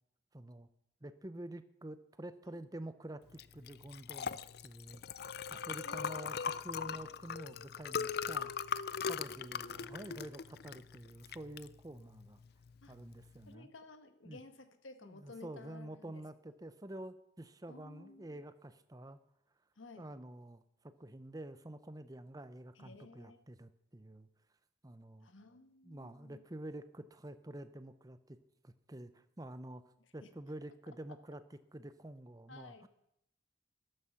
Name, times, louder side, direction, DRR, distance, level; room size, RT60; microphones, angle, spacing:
voice 1, 0.3-0.7 1.0-12.4 12.9-13.7 14.2-14.4 15.0-19.2 20.0-24.3 24.8-25.3 25.8-28.4 28.6-29.8 30.1-32.9, right 1 dB, 20° right, 12 dB, 0.7 m, -48 dB
Liquid, 3.3-13.5, left 6 dB, 55° left, 0.4 m, -40 dB
voice 2, 5.8-7.1 12.8-12.9 13.5-16.2 17.7-18.4 19.8-20.1 22.7-23.4 25.2-26.4 30.2-30.3 32.5-32.9, left 3 dB, 90° left, 8 dB, 1.4 m, -54 dB
13.5 x 11.0 x 5.9 m, 0.79 s
head